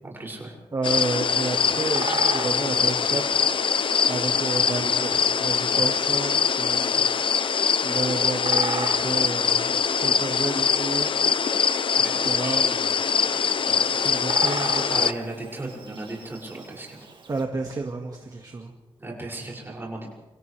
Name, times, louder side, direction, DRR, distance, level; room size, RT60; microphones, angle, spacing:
voice 1, 0.0-0.5 4.8-4.9 12.0-12.9 14.9-17.1 19.0-20.1, right 2 dB, 20° right, -2 dB, 6.3 m, -36 dB
voice 2, 0.7-3.4 4.1-7.0 7.8-11.1 12.0-15.1 17.3-18.7, right 3 dB, 40° right, 1 dB, 1.8 m, -31 dB
sound 1, 0.8-15.1, left 6 dB, 60° left, 0.6 m, -23 dB
Bird vocalization bird call bird song, 0.9-17.4, right 3 dB, 55° right, 2.4 m, -39 dB
28.5 x 27.5 x 3.4 m, 1.1 s
wide cardioid pair, 160°, 10 cm